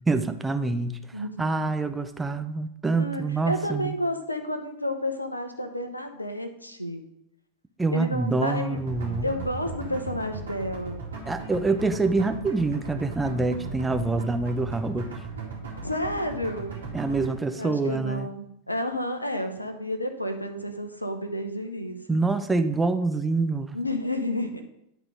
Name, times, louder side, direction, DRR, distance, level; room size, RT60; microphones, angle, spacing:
voice 1, 0.1-3.9 7.8-9.3 11.3-15.1 16.9-18.3 22.1-23.8, right 3 dB, 10° right, 8 dB, 0.6 m, -26 dB
voice 2, 1.1-1.5 3.0-7.0 7.9-8.8 9.2-11.0 15.8-16.8 17.6-22.2 23.7-24.6, left 1 dB, 85° left, 7 dB, 0.9 m, -31 dB
sound 1, 8.8-17.2, right 3 dB, 70° right, 2.3 m, -37 dB
11.0 x 3.9 x 4.9 m, 0.79 s
figure-of-eight pair, 90°, 0 cm